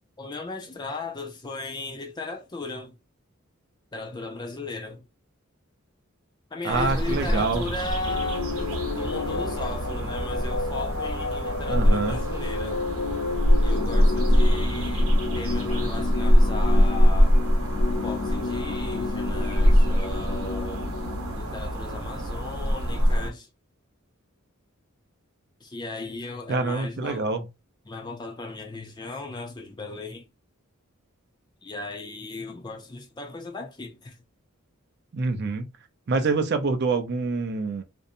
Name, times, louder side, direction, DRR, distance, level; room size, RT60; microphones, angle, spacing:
voice 1, 0.2-3.0 3.9-5.0 6.5-12.8 13.6-17.3 18.0-20.9 21.3-23.5 25.6-27.3 27.9-30.3 31.6-34.2, left 3 dB, 20° left, 0.5 m, -36 dB
voice 2, 6.6-7.7 11.7-12.2 26.5-27.5 35.1-35.7 36.1-37.8, right 3 dB, 50° right, 0.4 m, -26 dB
sound 1, 6.7-23.3, equal, 85° right, 0.8 m, -23 dB
sound 2, 8.1-21.8, left 4 dB, 80° left, 0.4 m, -32 dB
2.6 x 2.1 x 2.6 m
head